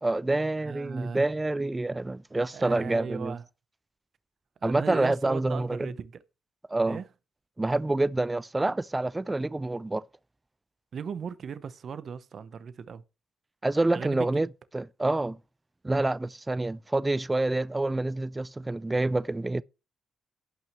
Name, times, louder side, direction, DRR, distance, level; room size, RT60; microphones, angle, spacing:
voice 1, 0.0-3.3 4.6-5.9 6.7-7.0 7.6-10.0 13.6-14.5 14.7-15.4 15.8-19.6, right 2 dB, 15° right, 0.4 m, -27 dB
voice 2, 0.6-1.2 2.5-3.4 4.6-6.1 6.9-7.0 10.9-13.0 13.9-14.4, right 6 dB, 55° right, 0.8 m, -37 dB
16.5 x 5.9 x 3.1 m
cardioid pair, 90°, 0 cm